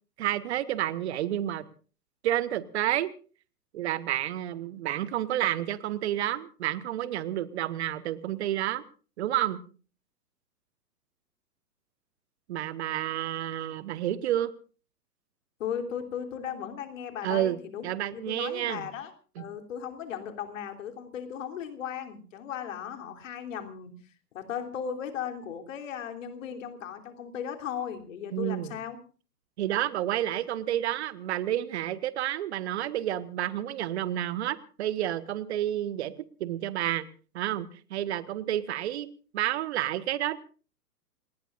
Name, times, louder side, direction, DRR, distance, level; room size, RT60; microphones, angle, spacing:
voice 1, 0.2-1.7 2.2-3.1 3.7-8.8 9.2-9.6 12.5-14.5 17.2-17.6 17.8-18.9 19.4-19.5 28.3-28.8 29.6-36.1 36.4-37.0 37.3-39.1 39.3-40.4, right 12 dB, 40° right, 15 dB, 1.3 m, -30 dB
voice 2, 15.6-19.1 19.4-29.0, left 8 dB, 50° left, 6 dB, 3.2 m, -37 dB
28.5 x 19.5 x 2.5 m, 0.37 s
figure-of-eight pair, 120°, 49 cm